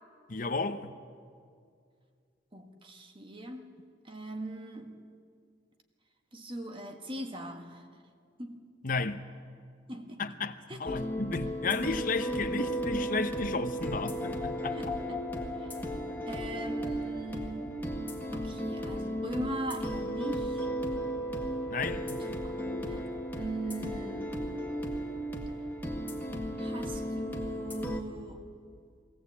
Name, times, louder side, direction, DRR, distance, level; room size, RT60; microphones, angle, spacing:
voice 1, 0.3-0.9 8.8-9.2 10.2-14.8 21.7-22.3, left 3 dB, 50° left, 0.9 m, -33 dB
voice 2, 2.5-3.8 4.0-5.0 6.3-7.8 8.4-8.6 9.9-10.2 10.7-10.8 14.7-15.2 15.6-15.7 16.3-17.8 18.3-20.7 22.2-23.1 23.4-24.3 26.6-28.5, right 1 dB, 30° right, 1.7 m, -40 dB
sound 1, 10.9-28.0, equal, 10° left, 1.9 m, -35 dB
21.5 x 17.0 x 8.5 m
head